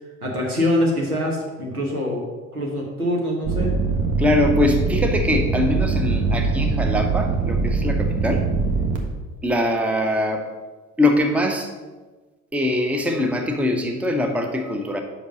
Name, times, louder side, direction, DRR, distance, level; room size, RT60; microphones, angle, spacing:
voice 1, 0.2-2.2 2.5-3.7, left 1 dB, 85° right, -2 dB, 1.4 m, -24 dB
sound 1, 3.4-9.0, right 4 dB, 45° right, 1.3 m, -22 dB
voice 2, 4.2-8.5 9.4-10.5 11.0-11.7 12.5-15.0, left 1 dB, 5° right, 5 dB, 0.7 m, -22 dB
5.4 x 5.0 x 6.2 m, 1.3 s
figure-of-eight pair, 65°, 43 cm